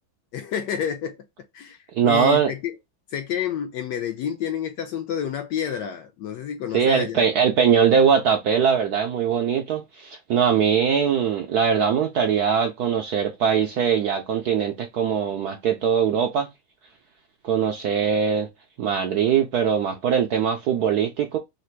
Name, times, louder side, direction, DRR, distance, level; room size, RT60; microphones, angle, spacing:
voice 1, 0.3-1.2 1.5-2.7 3.1-7.2, left 9 dB, 70° left, 1.0 m, -29 dB
voice 2, 1.9-2.5 6.7-16.5 17.4-18.5 18.8-21.4, right 7 dB, 75° right, 0.9 m, -21 dB
3.8 x 2.5 x 4.4 m
omnidirectional pair, 2.3 m